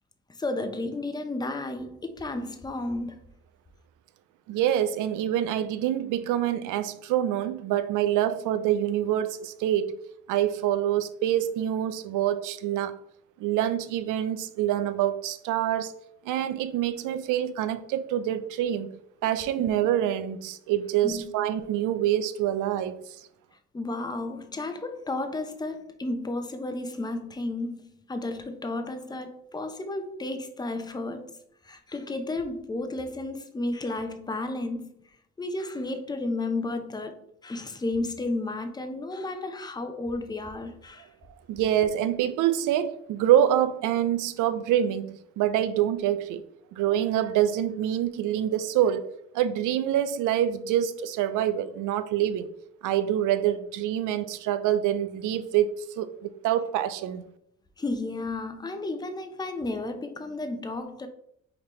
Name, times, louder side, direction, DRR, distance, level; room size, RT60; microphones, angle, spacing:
voice 1, 0.4-3.2 19.6-19.7 21.0-21.3 23.7-31.4 31.6-35.0 35.4-41.1 57.8-61.1, left 2 dB, 15° left, 0.6 m, -33 dB
voice 2, 4.5-10.0 10.3-13.0 13.4-15.9 16.2-23.3 41.5-46.4 46.7-49.0 49.3-52.5 52.8-57.2, right 11 dB, 85° right, 0.5 m, -26 dB
5.2 x 2.9 x 3.1 m
cardioid pair, 90°, 30 cm